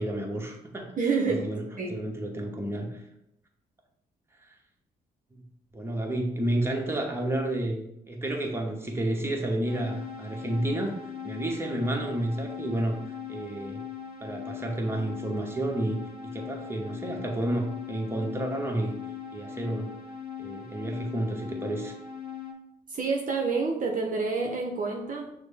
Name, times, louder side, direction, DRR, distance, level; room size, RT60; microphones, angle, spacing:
voice 1, 0.0-0.9 1.3-1.6 1.9-3.0 4.4-4.5 5.3-5.4 5.7-11.0 11.2-13.0 13.3-13.8 14.2-19.0 19.3-20.0 20.4-22.0, right 1 dB, 15° right, 1 dB, 1.1 m, -31 dB
voice 2, 1.0-1.5 1.8-2.0 22.9-25.3, right 4 dB, 45° right, 1 dB, 0.7 m, -28 dB
sound 1, 9.6-22.5, left 7 dB, 55° left, 0.9 m, -40 dB
6.2 x 2.1 x 3.4 m, 0.80 s
hypercardioid pair, 45°, 18 cm